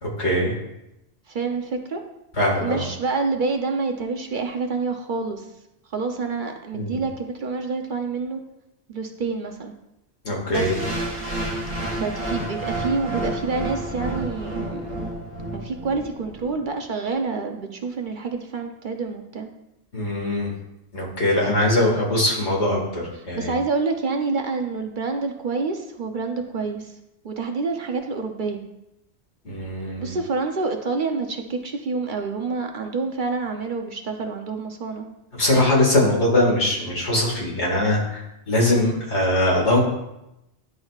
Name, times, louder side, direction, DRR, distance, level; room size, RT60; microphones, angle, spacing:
voice 1, 0.0-0.5 2.4-2.8 6.7-7.0 10.2-10.8 19.9-20.5 20.9-23.5 29.5-30.1 35.4-39.8, left 1 dB, 85° left, -2 dB, 2.2 m, -21 dB
voice 2, 1.3-2.0 2.5-5.5 5.9-8.4 8.9-9.7 10.5-10.7 11.9-14.9 15.5-19.5 23.2-26.9 27.2-28.6 30.0-35.1, right 4 dB, 50° right, 4 dB, 0.7 m, -27 dB
sound 1, 10.5-16.5, right 1 dB, 30° right, 1.5 m, -30 dB
10.5 x 6.2 x 2.4 m, 0.88 s
omnidirectional pair, 1.1 m